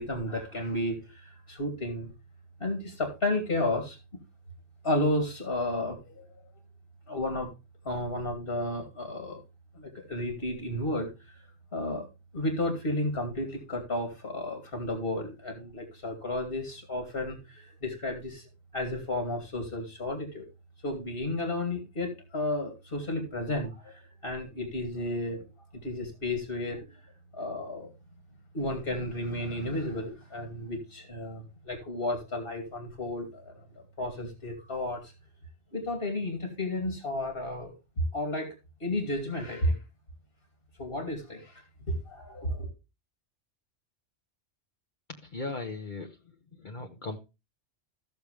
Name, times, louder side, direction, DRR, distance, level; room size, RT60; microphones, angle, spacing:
voice 1, 0.0-2.1 2.6-4.0 4.8-6.3 7.1-7.5 7.8-9.4 9.8-11.4 11.7-12.1 12.3-18.4 18.7-20.4 20.8-25.4 25.8-26.8 27.3-27.9 28.5-33.5 34.0-35.0 35.7-38.5 38.8-39.8 40.8-41.6 41.9-42.7, left 1 dB, 60° left, 4 dB, 2.8 m, -32 dB
voice 2, 45.3-46.1 46.6-47.2, left 3 dB, 45° left, 2 dB, 1.2 m, -36 dB
15.0 x 6.9 x 3.3 m, 0.27 s
omnidirectional pair, 1.1 m